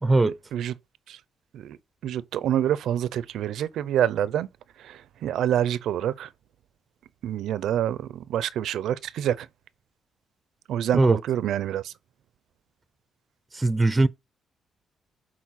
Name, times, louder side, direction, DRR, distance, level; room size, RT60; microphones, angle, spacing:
voice 1, 0.0-0.4 10.9-11.2 13.5-14.1, right 2 dB, 20° right, 0.6 m, -20 dB
voice 2, 2.0-4.5 4.8-6.3 7.2-9.5 10.7-11.9, right 10 dB, 80° right, 0.5 m, -27 dB
7.4 x 4.3 x 4.2 m
cardioid pair, 90°, 0 cm